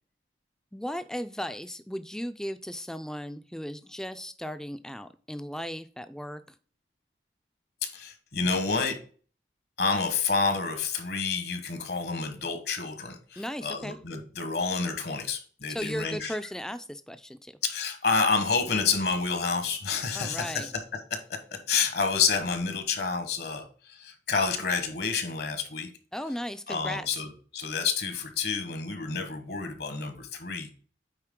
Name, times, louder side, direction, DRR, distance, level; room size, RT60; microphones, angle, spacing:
voice 1, 0.7-6.4 13.4-14.0 15.7-17.5 20.1-20.7 26.1-27.2, equal, 5° left, 11 dB, 0.4 m, -36 dB
voice 2, 7.9-9.0 9.8-16.3 17.6-20.7 21.1-21.2 21.5-25.9 26.7-30.7, left 5 dB, 65° left, 8 dB, 1.3 m, -29 dB
9.1 x 4.0 x 3.7 m, 0.41 s
head